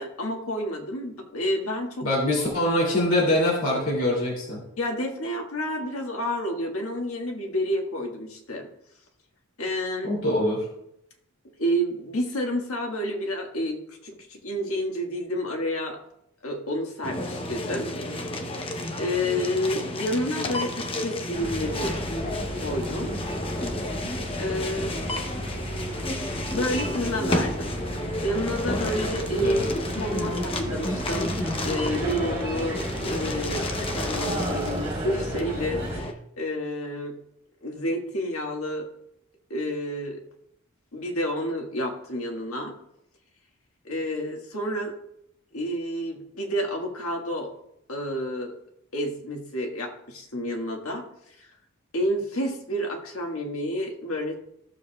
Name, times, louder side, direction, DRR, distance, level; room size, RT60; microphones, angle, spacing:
voice 1, 0.0-2.1 4.8-8.7 9.6-10.1 11.6-16.0 16.4-17.9 19.0-22.0 22.6-23.2 24.4-24.9 25.5-25.7 26.5-27.7 28.2-31.3 31.6-37.1 37.6-38.9 39.5-40.2 40.9-42.7 43.8-45.0 45.5-47.5 47.9-48.5 48.9-51.1 51.4-51.5 51.9-54.4, equal, 80° left, 1 dB, 1.7 m, -29 dB
voice 2, 2.0-4.6 10.0-10.6 29.4-29.7, left 1 dB, 65° left, -4 dB, 2.8 m, -24 dB
sound 1, 17.0-36.1, left 1 dB, 25° left, 0.8 m, -31 dB
sound 2, 21.3-36.0, right 1 dB, 30° right, 3.8 m, -34 dB
15.5 x 7.0 x 2.3 m, 0.77 s
head